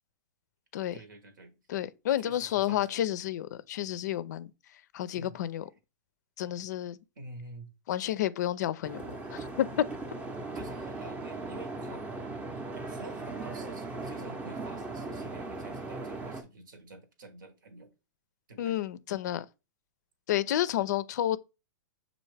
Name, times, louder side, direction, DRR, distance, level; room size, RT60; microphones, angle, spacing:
voice 1, 0.9-1.5 2.2-3.0 5.1-5.4 7.2-7.7 10.5-12.0 12.7-17.9 18.5-18.8, right 2 dB, 85° right, 1.2 m, -48 dB
voice 2, 1.7-4.5 4.9-5.6 6.4-7.0 7.9-9.0 9.3-9.8 18.6-19.5 20.3-21.4, left 12 dB, 65° left, 0.4 m, -30 dB
sound 1, 8.8-16.4, right 3 dB, 15° right, 0.5 m, -38 dB
6.3 x 2.5 x 3.2 m
hypercardioid pair, 130°, 10 cm